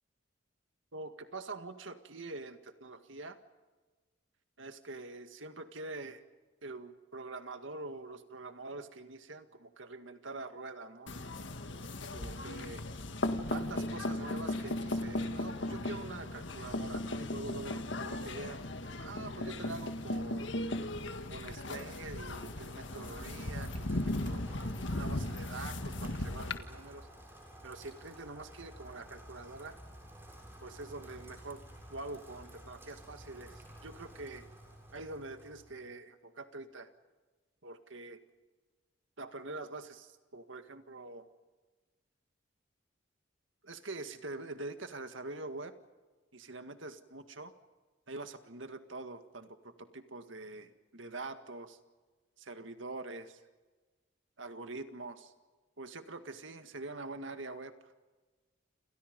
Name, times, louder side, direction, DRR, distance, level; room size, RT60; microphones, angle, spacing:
voice 1, 0.9-3.4 4.6-6.2 6.6-11.1 12.1-12.8 13.5-20.5 21.3-24.4 24.9-27.1 27.6-29.8 30.6-31.6 31.9-34.5 34.9-36.9 37.6-38.2 39.2-41.3 43.6-45.7 46.3-47.5 48.1-51.8 52.4-53.4 54.4-55.3 55.8-57.9, right 2 dB, 75° right, 8 dB, 2.0 m, -45 dB
sound 1, 11.1-26.6, left 1 dB, 65° left, 1.8 m, -37 dB
Rain, 22.0-35.8, equal, 10° right, 7.4 m, -52 dB
29.0 x 28.0 x 5.4 m, 1.3 s
head